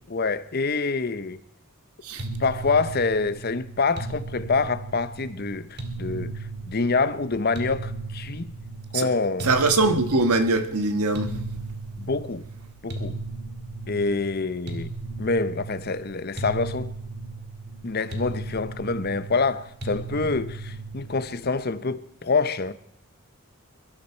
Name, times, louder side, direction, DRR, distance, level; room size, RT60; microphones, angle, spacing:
voice 1, 0.1-1.4 2.4-6.3 6.7-8.5 8.9-9.5 12.0-12.4 12.8-13.2 13.9-14.9 15.2-16.9 17.8-22.7, left 4 dB, 45° left, 0.8 m, -26 dB
sound 1, 2.2-21.5, right 2 dB, 50° right, 2.4 m, -36 dB
voice 2, 9.4-11.3, right 2 dB, 85° right, 1.5 m, -22 dB
23.0 x 12.5 x 4.5 m
head